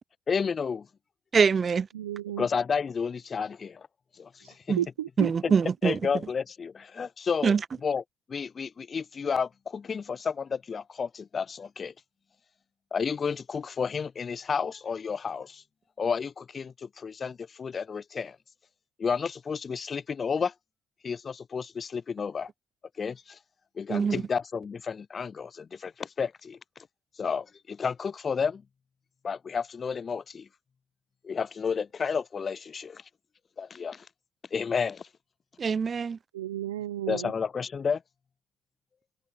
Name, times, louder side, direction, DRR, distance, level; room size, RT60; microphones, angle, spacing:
voice 1, 0.3-0.9 2.4-3.9 4.2-4.5 5.8-7.6 7.8-8.0 8.3-11.9 12.9-15.6 16.0-18.4 19.0-20.5 21.0-22.5 23.0-23.4 23.8-26.6 27.2-28.6 29.2-30.5 31.2-33.0 33.6-34.1 34.5-35.0 37.1-38.0, left 6 dB, 45° left, 0.3 m, -31 dB
voice 2, 1.3-1.9 4.7-4.8 5.2-6.0 7.4-7.6 23.9-24.2 35.6-36.2, right 6 dB, 45° right, 0.7 m, -24 dB
voice 3, 1.9-2.5 4.8-5.3 36.3-37.3, right 12 dB, 90° right, 0.7 m, -32 dB
hypercardioid pair, 45°, 0 cm